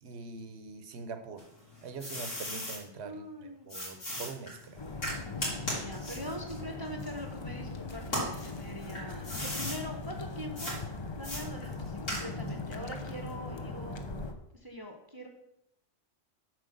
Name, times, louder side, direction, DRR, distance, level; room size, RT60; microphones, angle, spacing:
voice 1, 0.0-1.4 1.8-4.8, right 4 dB, 60° right, 8 dB, 1.2 m, -43 dB
sound 1, 1.4-2.8 3.7-7.6 8.0-9.8 10.6-10.8 11.2-12.6, equal, 80° left, 3.6 m, -37 dB
voice 2, 3.0-3.7 5.7-10.8 11.2-14.0 14.5-15.3, equal, 20° right, 2 dB, 0.9 m, -43 dB
sound 2, 4.8-14.3, left 3 dB, 30° left, 0.6 m, -40 dB
7.8 x 4.8 x 6.6 m, 0.80 s
omnidirectional pair, 1.3 m